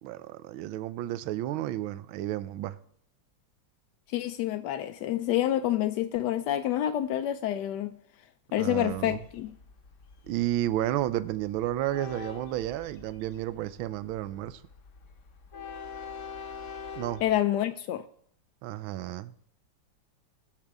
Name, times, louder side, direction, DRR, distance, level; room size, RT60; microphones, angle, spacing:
voice 1, 0.0-2.8 8.6-9.2 10.3-14.6 17.0-17.2 18.6-19.3, right 13 dB, 85° right, 1.4 m, -32 dB
voice 2, 4.1-8.0 8.5-9.6 17.2-18.0, left 12 dB, 75° left, 1.0 m, -28 dB
Train, 8.8-17.4, left 6 dB, 50° left, 1.0 m, -45 dB
20.0 x 6.8 x 3.5 m
omnidirectional pair, 2.2 m